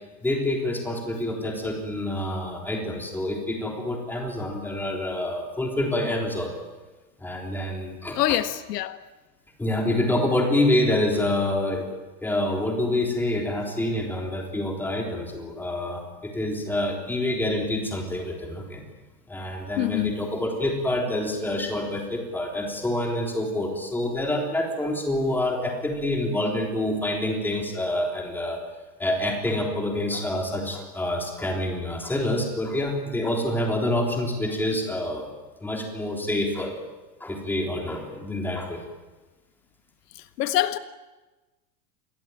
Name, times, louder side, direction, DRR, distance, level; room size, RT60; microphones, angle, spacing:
voice 1, 0.2-6.5 7.2-8.2 9.6-11.9 12.2-18.9 19.3-28.6 29.0-35.3 35.6-36.7 37.2-38.8, left 1 dB, 5° left, 3.5 m, -27 dB
voice 2, 8.1-9.0 19.8-20.1 40.4-40.8, left 13 dB, 85° left, 1.7 m, -24 dB
28.5 x 21.5 x 9.1 m
supercardioid pair, 175°, 46 cm